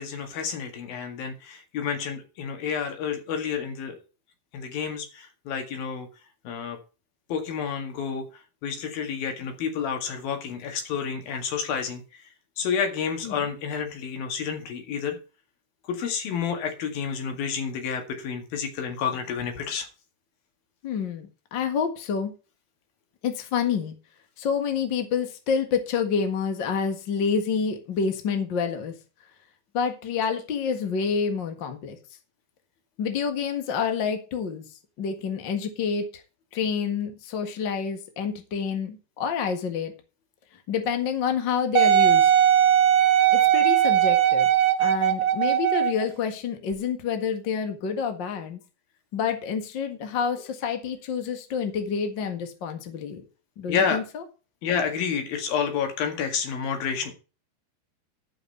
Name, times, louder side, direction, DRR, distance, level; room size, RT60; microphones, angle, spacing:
voice 1, 0.0-4.0 4.5-6.1 6.5-6.8 7.3-8.3 8.6-12.0 12.6-15.2 15.9-19.9 53.7-54.0 54.6-57.1, left 7 dB, 60° left, 5 dB, 3.5 m, -29 dB
voice 2, 20.8-22.3 23.2-23.9 24.4-28.9 29.7-32.0 33.0-34.6 35.0-36.1 36.5-39.9 40.7-42.3 43.3-44.5 44.8-48.6 49.1-53.2 53.6-54.2, left 6 dB, 90° left, 6 dB, 1.0 m, -28 dB
Wind instrument woodwind instrument, 41.8-46.1 46.7-46.8, right 11 dB, 70° right, 1.8 m, -19 dB
13.0 x 5.8 x 5.5 m, 0.32 s
omnidirectional pair, 5.1 m